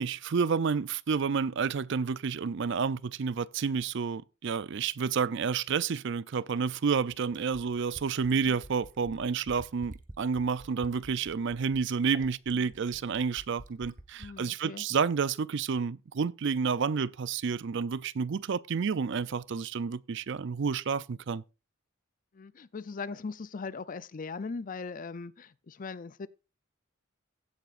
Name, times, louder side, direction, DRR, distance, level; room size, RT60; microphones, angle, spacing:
voice 1, 0.0-21.4, right 5 dB, 60° right, 0.5 m, -30 dB
Fill (with liquid), 6.3-14.4 15.8-15.9, right 1 dB, 40° right, 1.2 m, -49 dB
voice 2, 14.2-14.9 22.3-26.3, left 4 dB, 40° left, 0.5 m, -40 dB
16.0 x 8.0 x 2.5 m
head